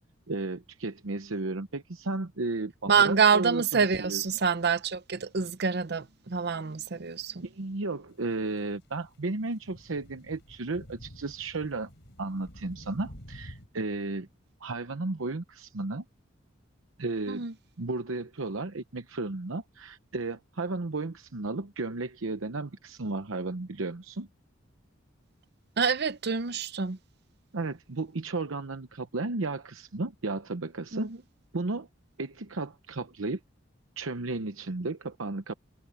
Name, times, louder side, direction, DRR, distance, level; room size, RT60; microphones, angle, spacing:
voice 1, 0.3-4.2 7.4-11.9 12.2-14.3 14.6-16.0 17.0-17.4 17.8-24.3 27.5-31.1 31.5-31.9 32.2-33.4 34.0-35.5, right 3 dB, 90° right, 0.9 m, -34 dB
voice 2, 2.9-7.5 17.3-17.5 25.8-27.0 30.9-31.2, right 6 dB, 55° right, 0.7 m, -26 dB
sound 1, 8.1-13.7, equal, 60° left, 4.9 m, -50 dB
head